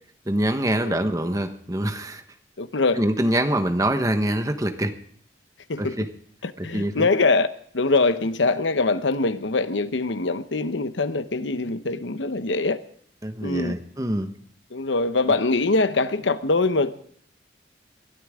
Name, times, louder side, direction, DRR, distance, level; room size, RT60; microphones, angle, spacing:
voice 1, 0.3-2.2 2.9-4.9 5.8-6.1 6.6-7.1 13.2-14.3, right 1 dB, 20° right, 1.2 m, -24 dB
voice 2, 2.6-3.0 5.7-6.0 6.4-7.5 7.7-12.8 13.4-13.7 14.7-16.9, left 3 dB, 85° left, 0.9 m, -23 dB
21.5 x 14.0 x 3.7 m
head